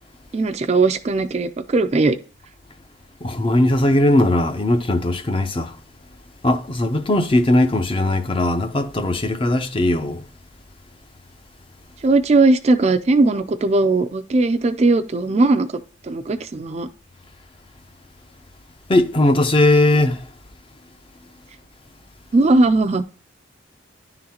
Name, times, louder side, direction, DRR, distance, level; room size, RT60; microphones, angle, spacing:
voice 1, 0.3-2.2 12.0-15.7 16.0-16.9 22.3-23.0, right 3 dB, 35° right, 0.3 m, -18 dB
voice 2, 3.2-5.7 6.4-10.2 18.9-20.2, left 1 dB, 25° left, 0.5 m, -18 dB
10.5 x 3.8 x 2.8 m
head